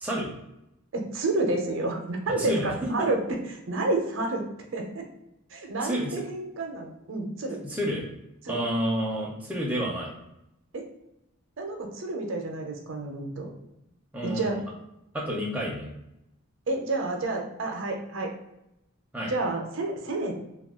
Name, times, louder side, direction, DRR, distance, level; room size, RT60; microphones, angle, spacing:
voice 1, 0.9-3.4 3.7-4.4 4.7-5.0 5.5-7.6 8.5-8.6 10.7-10.8 11.6-13.5 14.2-14.6 16.7-18.3 19.3-20.3, right 2 dB, 60° right, 2 dB, 0.6 m, -29 dB
voice 2, 2.4-3.1 5.8-6.2 7.6-8.0 8.5-10.1 14.1-14.6 15.1-15.9 19.1-19.3, equal, 5° right, -3 dB, 0.5 m, -29 dB
2.4 x 2.2 x 3.5 m, 0.86 s
head